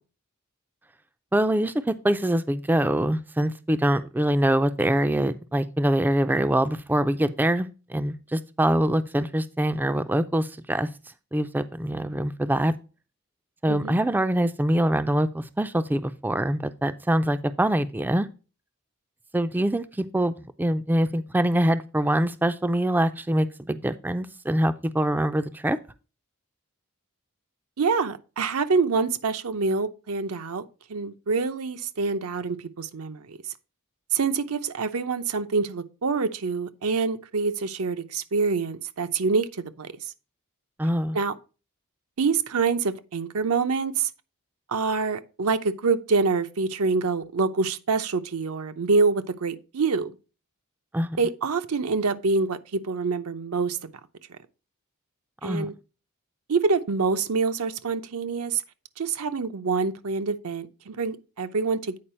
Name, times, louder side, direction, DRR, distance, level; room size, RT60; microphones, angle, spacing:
voice 1, 1.3-10.9 11.3-12.7 13.6-18.3 19.3-25.8 40.8-41.2 50.9-51.2 55.4-55.7, right 1 dB, 10° right, 0.3 m, -24 dB
voice 2, 27.8-33.4 34.1-39.9 41.1-41.3 42.2-44.1 44.7-50.1 51.2-53.8 55.4-55.8 56.5-58.6 59.0-62.0, right 4 dB, 80° right, 0.7 m, -26 dB
8.6 x 4.7 x 4.3 m
head